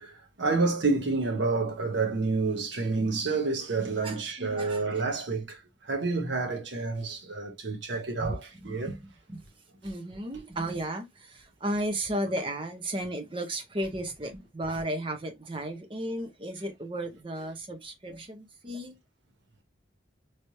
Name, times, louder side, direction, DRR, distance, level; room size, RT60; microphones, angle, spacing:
voice 1, 0.4-5.4 5.9-8.9, right 3 dB, 70° right, 1.0 m, -28 dB
voice 2, 4.0-4.8 8.2-8.3 8.6-9.0 9.3-9.4 9.8-18.9, right 1 dB, 25° right, 0.7 m, -34 dB
3.2 x 3.0 x 2.7 m
head